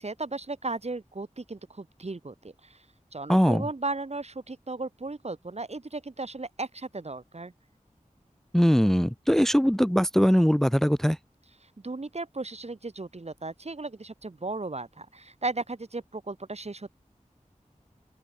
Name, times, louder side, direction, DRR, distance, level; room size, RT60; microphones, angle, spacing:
voice 1, 0.0-2.8 3.1-7.5 11.8-16.9, right 3 dB, 55° right, 2.2 m, -35 dB
voice 2, 3.3-3.6 8.5-11.2, equal, 5° left, 0.8 m, -21 dB
wide cardioid pair, 45°, 13 cm